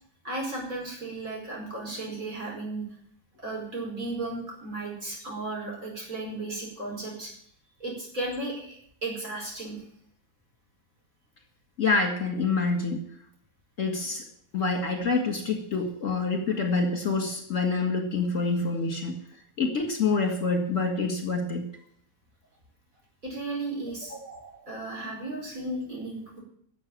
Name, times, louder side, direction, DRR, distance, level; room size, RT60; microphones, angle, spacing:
voice 1, 0.2-2.8 3.4-7.3 7.8-9.8 23.2-24.1 24.7-26.4, right 2 dB, 45° right, -2 dB, 5.4 m, -35 dB
voice 2, 11.8-13.0 13.8-14.2 14.5-19.2 19.6-21.7 24.1-24.7, left 4 dB, 45° left, 3 dB, 2.2 m, -27 dB
12.5 x 7.5 x 8.7 m, 0.66 s
omnidirectional pair, 1.9 m